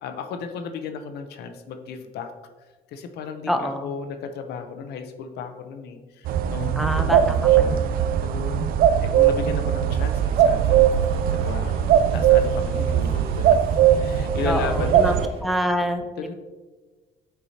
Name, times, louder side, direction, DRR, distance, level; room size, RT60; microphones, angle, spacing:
voice 1, 0.0-2.3 2.9-7.9 8.2-13.6 14.0-14.9 16.2-16.3, left 6 dB, 75° left, 7 dB, 0.7 m, -34 dB
voice 2, 3.5-3.9 6.8-8.2 14.4-15.1 15.4-16.3, equal, ahead, 6 dB, 0.6 m, -27 dB
sound 1, 6.2-15.3, right 9 dB, 60° right, 0.4 m, -20 dB
sound 2, 10.0-15.4, right 1 dB, 35° right, 1.7 m, -44 dB
8.1 x 4.7 x 2.8 m, 1.3 s
cardioid pair, 110°, 17 cm